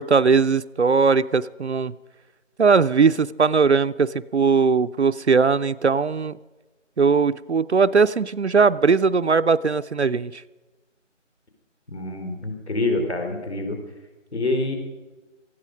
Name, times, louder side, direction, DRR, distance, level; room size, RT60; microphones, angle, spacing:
voice 1, 0.0-1.9 2.6-6.4 7.0-10.4, right 5 dB, 60° right, 13 dB, 0.5 m, -19 dB
voice 2, 11.9-13.8 14.3-14.8, left 2 dB, 60° left, 4 dB, 3.7 m, -26 dB
18.5 x 14.5 x 5.1 m, 1.2 s
figure-of-eight pair, 170°, 37 cm